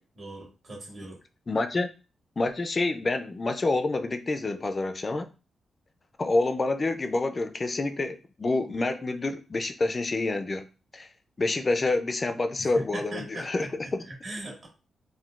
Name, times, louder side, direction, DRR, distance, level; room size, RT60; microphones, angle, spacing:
voice 1, 0.2-1.2 12.6-14.7, right 1 dB, 60° right, -2 dB, 1.4 m, -40 dB
voice 2, 1.5-1.9 2.4-5.3 6.2-10.7 10.9-11.1 11.4-14.1, left 2 dB, 35° left, 8 dB, 0.3 m, -27 dB
3.6 x 2.2 x 2.3 m, 0.33 s
cardioid pair, 80°, 0 cm